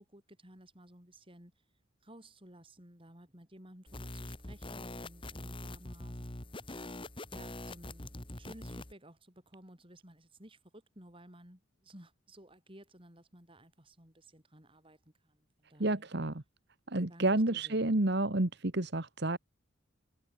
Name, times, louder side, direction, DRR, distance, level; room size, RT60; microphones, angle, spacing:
voice 1, 0.0-1.5 2.0-6.7 7.3-16.1 17.1-18.0, right 1 dB, 25° right, 6.6 m, -56 dB
sound 1, 3.9-8.9, left 1 dB, 25° left, 2.0 m, -44 dB
voice 2, 15.8-16.4 16.9-19.4, right 2 dB, 55° right, 1.6 m, -30 dB
head